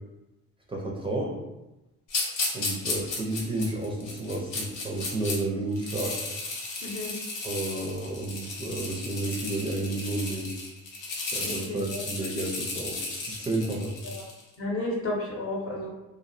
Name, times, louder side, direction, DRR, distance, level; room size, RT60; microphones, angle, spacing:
voice 1, 0.7-1.4 2.5-6.2 7.4-10.5 11.3-13.9, right 2 dB, 20° right, -3 dB, 0.4 m, -31 dB
sound 1, 2.1-5.4 5.7-14.4, left 3 dB, 90° left, 0.7 m, -34 dB
voice 2, 6.8-7.1 11.4-12.0 14.0-14.1 14.6-15.9, left 2 dB, 50° left, -1 dB, 0.7 m, -32 dB
2.3 x 2.0 x 2.5 m, 0.99 s
cardioid pair, 90°, 30 cm